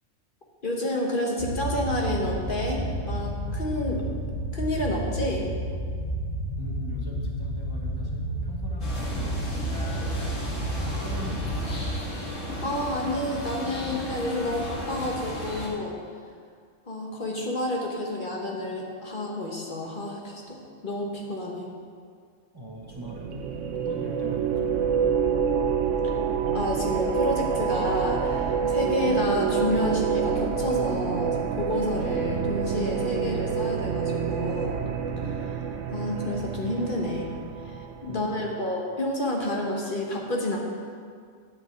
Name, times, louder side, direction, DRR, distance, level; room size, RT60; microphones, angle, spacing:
voice 1, 0.6-4.0 4.5-5.5 12.6-16.0 16.9-21.7 26.5-34.8 35.2-35.5 35.9-37.3 37.6-40.6, left 1 dB, 45° left, -1 dB, 1.5 m, -29 dB
sound 1, 1.4-12.0, right 1 dB, 65° left, 1.8 m, -31 dB
voice 2, 6.6-11.8 22.5-25.2 38.1-38.6, equal, 20° right, -2 dB, 1.1 m, -41 dB
sound 2, 8.8-15.7, equal, 85° left, 2.2 m, -35 dB
sound 3, 22.8-38.3, right 7 dB, 80° right, 1.1 m, -27 dB
9.6 x 5.5 x 8.1 m, 2.1 s
omnidirectional pair, 1.3 m